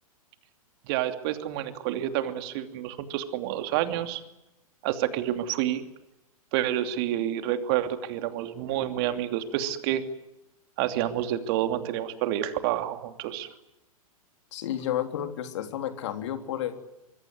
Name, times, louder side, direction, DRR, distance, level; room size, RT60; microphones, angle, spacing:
voice 1, 0.9-4.2 4.8-5.8 6.5-10.0 10.8-13.5, right 12 dB, 40° right, 8 dB, 2.9 m, -29 dB
voice 2, 14.5-16.8, left 11 dB, 50° left, 7 dB, 3.5 m, -31 dB
25.5 x 23.0 x 9.6 m, 0.92 s
figure-of-eight pair, 110°, 19 cm